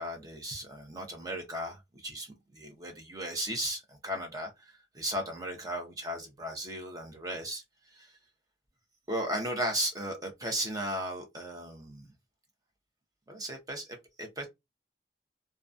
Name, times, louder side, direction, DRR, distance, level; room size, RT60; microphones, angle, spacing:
voice 1, 0.0-7.6 7.9-8.1 9.1-12.1 13.3-14.5, right 1 dB, 20° right, 0.6 m, -36 dB
2.2 x 2.2 x 2.5 m
head